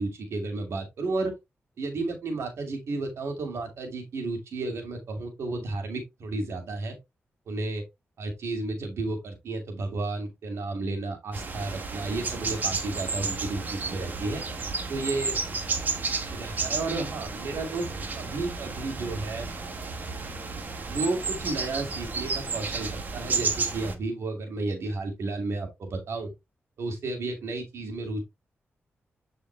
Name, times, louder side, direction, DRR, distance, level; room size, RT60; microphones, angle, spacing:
voice 1, 0.0-1.3 1.8-7.0 7.5-7.8 8.2-14.4 14.9-15.4 16.3-17.8 18.1-19.5 20.9-26.3 26.8-28.2, right 3 dB, 75° right, 2.6 m, -32 dB
sound 1, 11.3-23.9, right 4 dB, 40° right, 1.5 m, -32 dB
8.2 x 4.9 x 3.3 m
wide cardioid pair, 165°, 5 cm